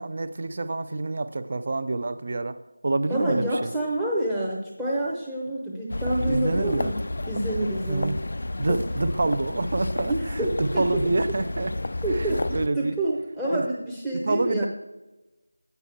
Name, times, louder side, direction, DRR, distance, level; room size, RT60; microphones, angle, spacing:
voice 1, 0.0-3.7 6.3-6.9 7.9-8.2 8.6-11.7 12.2-12.9 13.5-13.6 14.2-14.7, right 2 dB, 40° right, 12 dB, 0.5 m, -27 dB
voice 2, 3.1-6.9 7.3-8.1 10.0-11.0 12.0-14.7, right 1 dB, 5° right, -5 dB, 0.7 m, -28 dB
sound 1, 5.9-12.7, left 2 dB, 55° left, 0.4 m, -31 dB
8.1 x 5.6 x 7.2 m, 1.0 s
figure-of-eight pair, 175°, 0 cm